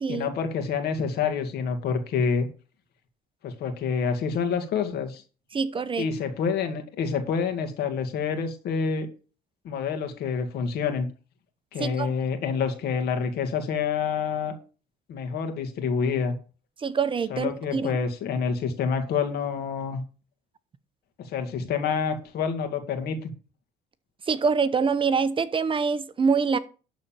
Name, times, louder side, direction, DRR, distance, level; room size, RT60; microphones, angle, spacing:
voice 1, 0.1-2.5 3.4-5.2 6.0-9.1 9.6-11.1 11.7-14.6 15.1-16.4 17.3-20.0 21.2-23.3, left 6 dB, 70° left, 2.3 m, -27 dB
voice 2, 5.5-6.1 11.8-12.1 16.8-17.9 24.3-26.6, right 5 dB, 30° right, 0.8 m, -25 dB
12.0 x 4.1 x 7.5 m
cardioid pair, 110°, 17 cm